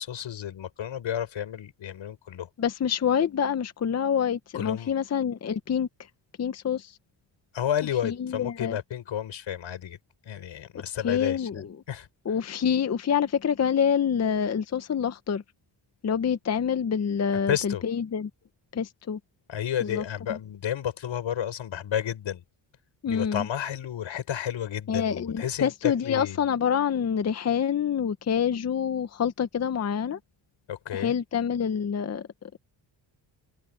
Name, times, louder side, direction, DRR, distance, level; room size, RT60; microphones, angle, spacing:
voice 1, 0.0-2.5 4.5-4.9 7.5-10.0 10.2-12.1 17.5-17.8 19.5-22.4 23.1-26.4 30.7-31.1, left 10 dB, 85° left, 5.4 m, -31 dB
voice 2, 2.6-5.9 6.4-7.0 8.0-8.8 10.7-11.8 12.3-15.4 16.0-18.3 18.7-19.2 19.8-20.0 20.3-20.4 23.0-23.5 24.9-30.2 30.9-32.6, left 7 dB, 35° left, 0.7 m, -27 dB
wide cardioid pair, 170°, 45 cm